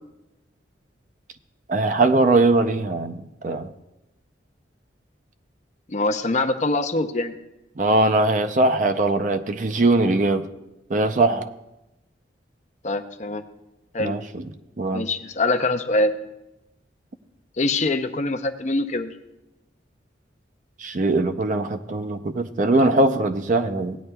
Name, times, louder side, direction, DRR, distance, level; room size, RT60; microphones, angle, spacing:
voice 1, 1.7-3.7 7.8-10.4 10.9-11.5 14.0-14.4 14.8-15.1 20.8-24.0, right 2 dB, 45° right, 8 dB, 0.5 m, -21 dB
voice 2, 5.9-7.3 12.8-13.4 13.9-14.2 14.9-16.1 17.6-19.1, left 2 dB, 40° left, 8 dB, 0.6 m, -24 dB
17.5 x 9.7 x 2.3 m, 0.95 s
head